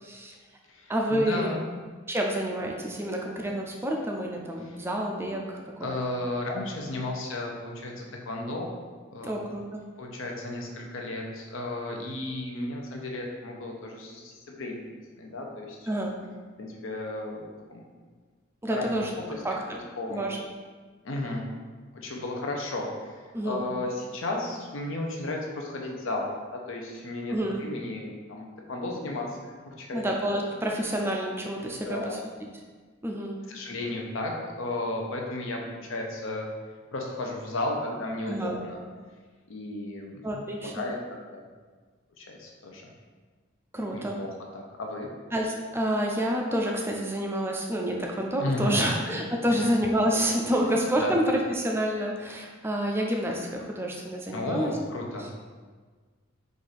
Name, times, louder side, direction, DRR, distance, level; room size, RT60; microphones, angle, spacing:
voice 1, 0.0-0.3 0.9-1.5 2.1-6.0 9.2-9.8 15.9-16.2 18.6-19.1 19.4-19.6 20.1-20.4 23.3-23.7 27.3-27.6 29.9-32.2 33.0-33.4 38.3-38.6 40.2-40.8 43.7-44.2 45.3-54.7 55.2-55.3, equal, 10° right, 0 dB, 0.3 m, -28 dB
voice 2, 0.7-1.6 4.6-4.8 5.8-8.7 9.1-9.3 10.0-14.9 15.2-15.9 16.6-17.8 18.7-19.4 20.0-20.3 21.0-21.4 21.9-23.2 23.4-30.1 31.6-32.2 33.5-36.5 36.9-38.8 39.5-41.0 41.3-41.4 42.2-42.9 43.9-45.1 48.4-49.0 49.5-49.6 51.0-51.1 54.3-55.3, left 2 dB, 75° left, 0 dB, 0.7 m, -34 dB
4.6 x 2.5 x 4.1 m, 1.5 s
head